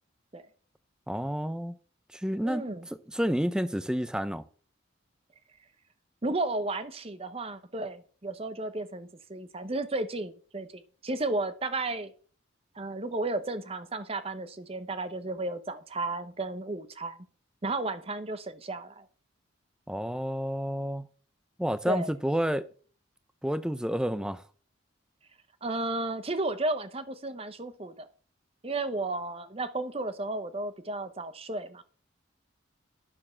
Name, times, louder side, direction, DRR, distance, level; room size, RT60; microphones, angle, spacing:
voice 1, 1.1-1.7 2.1-2.7 3.1-4.4 19.9-21.1 21.6-22.7 23.4-24.4, equal, 5° right, 0.5 m, -29 dB
voice 2, 2.4-2.9 6.2-12.1 12.8-17.2 17.6-19.0 21.9-22.1 25.6-28.1 28.6-31.8, right 2 dB, 30° right, 0.8 m, -33 dB
9.8 x 7.1 x 5.7 m
head